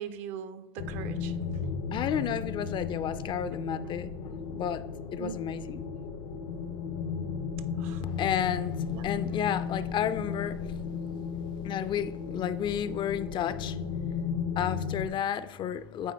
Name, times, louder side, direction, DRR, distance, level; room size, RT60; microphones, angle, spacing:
voice 1, 0.0-1.9 5.2-5.4 7.8-8.1 8.9-9.1, right 8 dB, 60° right, 11 dB, 0.6 m, -40 dB
sound 1, 0.8-15.1, left 6 dB, 80° left, 0.7 m, -35 dB
voice 2, 1.9-4.1 4.5-4.8 5.1-5.8 8.0-10.7 11.6-13.8 14.6-16.1, left 9 dB, 40° left, 14 dB, 0.4 m, -32 dB
8.7 x 3.7 x 3.3 m, 1.1 s
hypercardioid pair, 85°, 13 cm